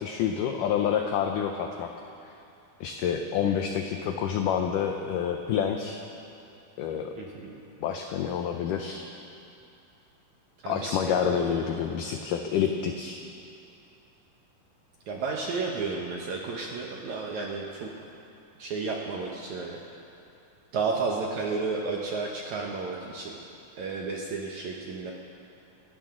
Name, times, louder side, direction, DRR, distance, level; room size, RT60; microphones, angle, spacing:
voice 1, 0.0-1.9 2.8-6.0 6.8-7.1 7.8-9.1 10.7-13.2, left 8 dB, 80° left, 4 dB, 1.9 m, -28 dB
voice 2, 7.2-7.6 10.6-11.6 15.1-17.9 18.6-19.8 20.7-23.4 23.8-25.1, right 4 dB, 65° right, -1 dB, 1.9 m, -32 dB
27.5 x 12.5 x 3.8 m, 2.7 s
omnidirectional pair, 4.5 m